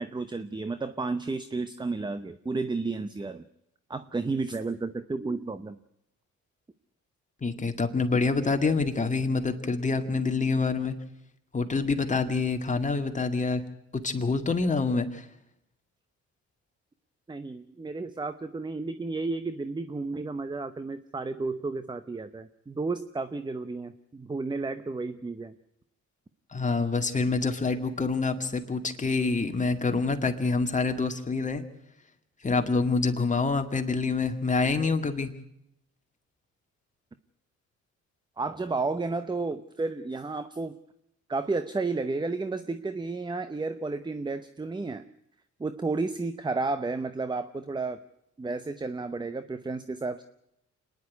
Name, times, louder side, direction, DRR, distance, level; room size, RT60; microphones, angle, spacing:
voice 1, 0.0-3.4 3.9-5.8 17.3-25.5 38.4-40.7 41.3-45.0 45.6-48.0 48.4-50.2, right 3 dB, 15° right, 12 dB, 0.8 m, -32 dB
voice 2, 7.4-10.9 11.5-13.6 13.9-15.3 26.5-31.6 32.4-35.3, left 4 dB, 25° left, 5 dB, 2.1 m, -26 dB
26.0 x 10.5 x 9.5 m, 0.81 s
cardioid pair, 90°, 30 cm